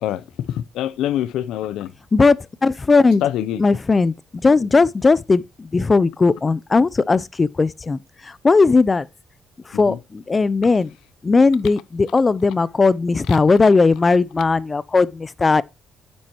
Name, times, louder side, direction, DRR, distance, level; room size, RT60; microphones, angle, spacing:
voice 1, 0.0-1.9 3.2-3.6 9.9-10.0, left 12 dB, 90° left, 0.6 m, -25 dB
voice 2, 2.1-3.2 3.6-9.1 9.7-10.9 11.2-15.6, left 4 dB, 30° left, 0.5 m, -17 dB
9.8 x 7.4 x 2.9 m
cardioid pair, 90°, 0 cm